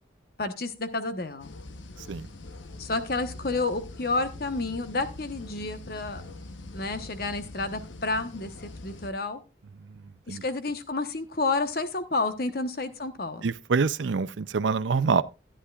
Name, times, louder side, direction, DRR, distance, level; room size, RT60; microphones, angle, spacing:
voice 1, 0.4-1.5 2.8-6.2 6.7-9.4 10.3-13.5, left 3 dB, 55° left, 1.0 m, -30 dB
sound 1, 1.4-9.1, left 2 dB, 85° left, 0.9 m, -43 dB
voice 2, 9.8-10.4 13.4-15.2, right 5 dB, 80° right, 0.5 m, -26 dB
14.0 x 9.9 x 2.4 m
head